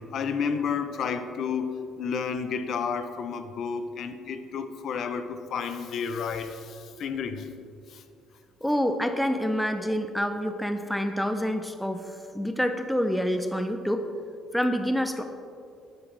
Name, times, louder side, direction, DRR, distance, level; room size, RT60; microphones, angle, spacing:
voice 1, 0.0-7.5 7.9-8.0, left 6 dB, 55° left, 9 dB, 0.6 m, -31 dB
voice 2, 8.6-14.1 14.5-15.2, equal, ahead, 7 dB, 0.4 m, -27 dB
9.9 x 9.4 x 3.3 m, 2.4 s
cardioid pair, 140°, 0 cm